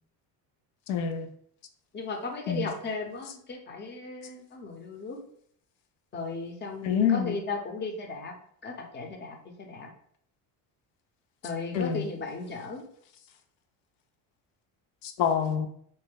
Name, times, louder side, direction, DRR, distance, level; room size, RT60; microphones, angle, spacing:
voice 1, 0.9-1.3 2.5-2.7 6.8-7.4 11.7-12.0 15.0-15.7, left 8 dB, 85° left, 6 dB, 0.5 m, -26 dB
voice 2, 1.9-5.2 6.1-8.3 8.6-9.9 11.4-12.8, left 3 dB, 25° left, 2 dB, 0.6 m, -36 dB
2.7 x 2.1 x 3.7 m, 0.64 s
cardioid pair, 105°, 43 cm